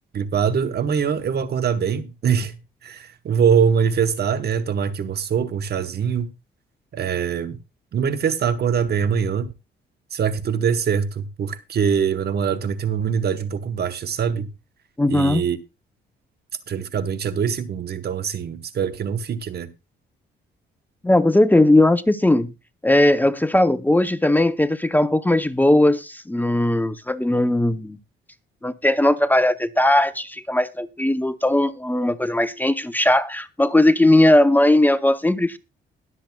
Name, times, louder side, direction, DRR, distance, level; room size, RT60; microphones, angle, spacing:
voice 1, 0.1-6.3 6.9-7.6 7.9-9.5 10.1-14.5 15.1-15.6 16.7-19.7, right 7 dB, 55° right, 1.1 m, -23 dB
voice 2, 15.0-15.4 21.0-22.5 22.8-28.0 28.6-35.6, left 1 dB, 10° left, 0.7 m, -18 dB
21.0 x 7.6 x 2.3 m
cardioid pair, 90°, 20 cm